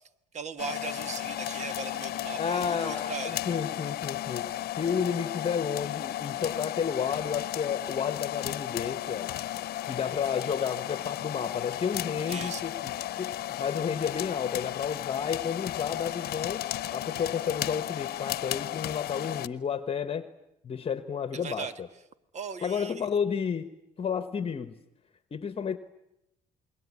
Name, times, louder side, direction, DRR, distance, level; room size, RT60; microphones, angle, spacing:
voice 1, 0.3-3.4 12.3-12.7 21.3-21.7 22.3-23.1, right 5 dB, 40° right, 12 dB, 1.5 m, -38 dB
sound 1, 0.6-19.5, left 13 dB, 65° left, 1.0 m, -34 dB
voice 2, 2.4-4.5 4.7-9.3 9.9-12.9 13.2-13.3 13.6-20.3 20.6-21.9 22.6-23.7 24.0-24.8 25.3-25.8, left 7 dB, 35° left, 11 dB, 1.2 m, -31 dB
28.5 x 21.5 x 9.7 m, 0.84 s
cardioid pair, 110°, 17 cm